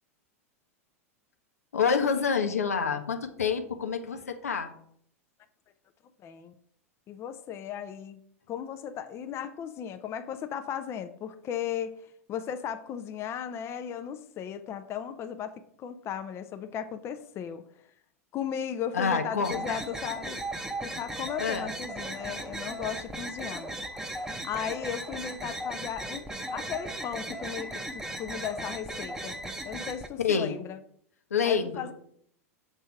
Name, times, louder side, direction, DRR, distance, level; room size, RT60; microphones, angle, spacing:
voice 1, 1.7-4.7 18.9-19.8 21.4-21.7 30.2-30.6 31.3-31.9, left 6 dB, 85° left, 6 dB, 0.9 m, -27 dB
voice 2, 6.2-6.5 7.1-8.2 8.5-17.6 18.3-20.4 20.8-23.9 24.4-26.2 26.5-29.4 29.6-30.8 31.4-31.9, left 8 dB, 35° left, 9 dB, 0.5 m, -36 dB
sound 1, 19.4-30.1, right 1 dB, 5° right, 0.8 m, -37 dB
6.3 x 3.3 x 5.7 m, 0.66 s
hypercardioid pair, 95°, 8 cm